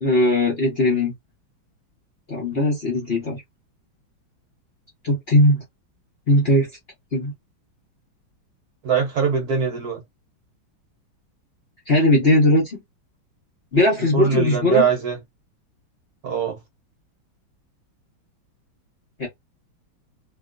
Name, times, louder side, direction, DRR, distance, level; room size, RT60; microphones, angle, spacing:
voice 1, 0.0-1.1 2.3-3.4 5.0-5.6 6.3-6.7 7.1-7.3 11.9-12.8 13.7-14.8 19.2-19.3, left 1 dB, 45° left, 0.9 m, -19 dB
voice 2, 8.8-10.0 14.1-15.2 16.2-16.6, right 6 dB, 60° right, 1.2 m, -22 dB
2.9 x 2.8 x 2.4 m
omnidirectional pair, 2.2 m